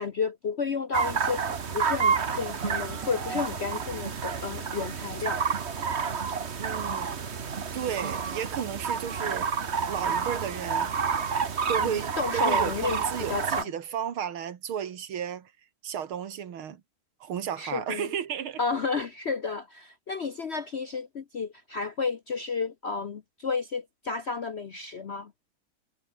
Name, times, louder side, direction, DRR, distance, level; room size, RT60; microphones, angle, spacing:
voice 1, 0.0-1.4 1.7-5.4 11.8-13.7 17.6-18.1 18.6-25.3, left 5 dB, 55° left, 0.7 m, -32 dB
sound 1, 0.9-13.6, right 6 dB, 35° right, 1.4 m, -29 dB
sound 2, 2.3-5.7, right 4 dB, 55° right, 3.7 m, -45 dB
voice 2, 6.6-7.1 7.7-9.5 9.9-10.9 11.7-15.5 15.8-16.8 17.2-18.6, right 8 dB, 90° right, 2.5 m, -33 dB
omnidirectional pair, 2.3 m